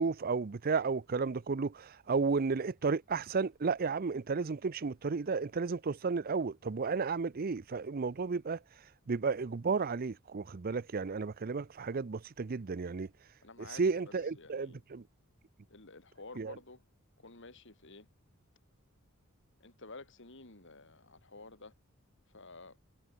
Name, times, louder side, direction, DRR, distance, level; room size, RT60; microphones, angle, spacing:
voice 1, 0.0-8.6 9.1-13.1 13.6-15.0 16.4-16.5, right 4 dB, 45° right, 0.5 m, -33 dB
voice 2, 13.4-13.8 14.3-14.8 15.7-16.8 17.2-18.1 19.6-21.7 22.3-22.8, left 3 dB, 60° left, 3.0 m, -51 dB
head